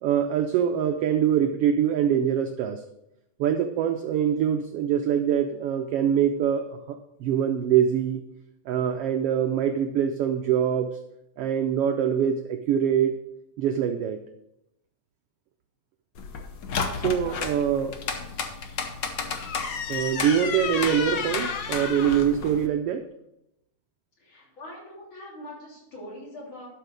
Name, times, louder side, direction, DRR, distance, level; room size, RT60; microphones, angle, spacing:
voice 1, 0.0-2.8 3.4-8.2 8.7-10.9 11.4-13.2 13.6-14.2 17.0-18.0 19.9-23.1, right 9 dB, 85° right, 6 dB, 1.3 m, -24 dB
sound 1, 16.2-22.7, left 5 dB, 75° left, 1.0 m, -31 dB
voice 2, 24.2-26.7, left 1 dB, 40° left, -4 dB, 3.9 m, -43 dB
12.0 x 6.1 x 5.1 m, 0.84 s
omnidirectional pair, 3.4 m